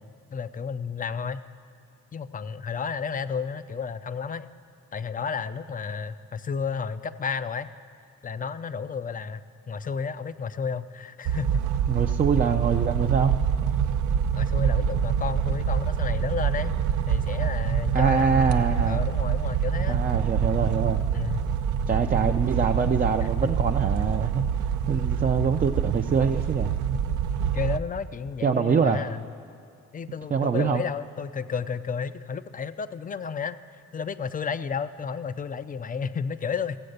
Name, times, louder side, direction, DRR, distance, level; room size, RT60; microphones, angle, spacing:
voice 1, 0.3-1.4 2.1-4.5 4.9-7.7 8.2-11.7 14.3-16.7 17.1-20.0 21.1-21.5 23.2-23.3 24.0-24.2 27.4-29.2 29.9-36.8, left 6 dB, 30° left, 14 dB, 0.4 m, -32 dB
sound 1, 11.2-27.8, right 8 dB, 75° right, 0.6 m, -26 dB
voice 2, 11.9-13.3 17.9-19.0 19.9-21.0 21.9-24.4 24.9-26.7 28.4-29.0 30.3-30.8, right 6 dB, 30° right, 4 dB, 0.4 m, -24 dB
15.0 x 7.6 x 6.6 m, 2.3 s
cardioid pair, 90°, 30 cm